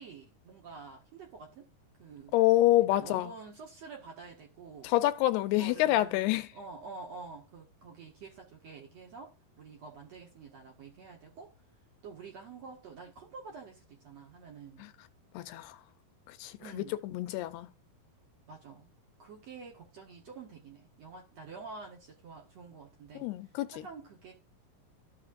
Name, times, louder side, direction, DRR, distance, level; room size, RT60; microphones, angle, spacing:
voice 1, 0.0-1.7 2.0-2.3 2.9-4.9 5.6-6.2 6.5-11.5 12.0-14.9 16.6-16.9 18.5-18.9 19.2-23.3 23.7-24.3, right 4 dB, 50° right, 2.2 m, -48 dB
voice 2, 2.3-3.3 4.8-6.5 14.8-14.9 15.3-15.8 16.3-17.7 23.2-23.9, left 16 dB, 80° left, 2.6 m, -27 dB
14.0 x 5.8 x 2.5 m
omnidirectional pair, 4.7 m